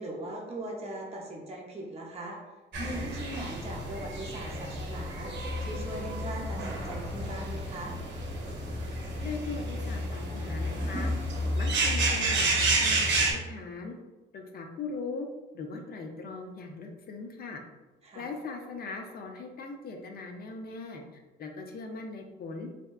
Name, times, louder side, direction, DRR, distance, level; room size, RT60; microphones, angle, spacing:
voice 1, 0.0-2.4 2.8-5.3 5.6-8.0 18.0-18.3, right 1 dB, 30° right, -2 dB, 0.6 m, -40 dB
sound 1, 2.7-13.3, right 1 dB, 70° right, 0.7 m, -30 dB
voice 2, 9.2-11.1 11.6-13.9 14.3-15.3 15.5-17.6 18.1-21.0 21.4-22.7, left 4 dB, 50° left, 3 dB, 0.4 m, -39 dB
2.7 x 2.1 x 2.3 m, 1.2 s
cardioid pair, 90°, 20 cm